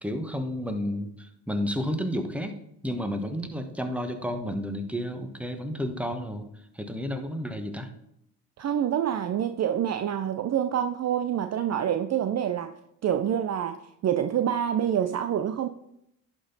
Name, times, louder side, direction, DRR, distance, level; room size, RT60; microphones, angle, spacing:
voice 1, 0.0-2.5 2.8-6.5 6.7-7.9, equal, 5° right, 6 dB, 1.3 m, -31 dB
voice 2, 8.6-12.7 13.0-15.7, right 9 dB, 40° right, 9 dB, 0.5 m, -27 dB
11.0 x 4.4 x 4.0 m, 0.78 s
supercardioid pair, 55°, 39 cm